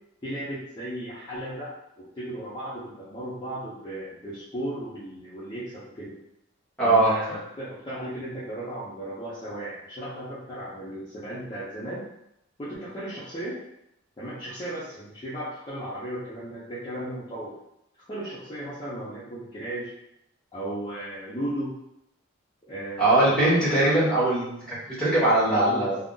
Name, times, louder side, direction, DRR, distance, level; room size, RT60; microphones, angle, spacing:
voice 1, 0.2-6.1 6.8-12.1 12.6-13.6 14.2-17.5 18.1-19.9 20.5-21.7 22.7-24.0 25.2-25.9, right 1 dB, 20° left, -11 dB, 0.6 m, -35 dB
voice 2, 6.8-7.1 23.0-26.0, right 2 dB, 5° left, -8 dB, 1.0 m, -21 dB
2.4 x 2.0 x 3.7 m, 0.80 s
head